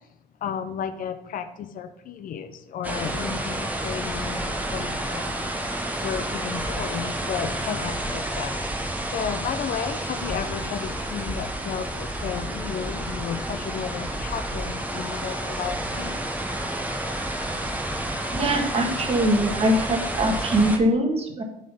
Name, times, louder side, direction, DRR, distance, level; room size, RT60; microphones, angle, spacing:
voice 1, 0.4-8.6 9.1-16.2, left 7 dB, 55° left, 9 dB, 0.6 m, -33 dB
sound 1, 2.8-20.8, right 1 dB, 10° right, 0.9 m, -30 dB
voice 2, 18.3-21.4, right 1 dB, 35° right, 3 dB, 1.4 m, -22 dB
7.5 x 3.9 x 5.5 m, 0.81 s
cardioid pair, 110°, 17 cm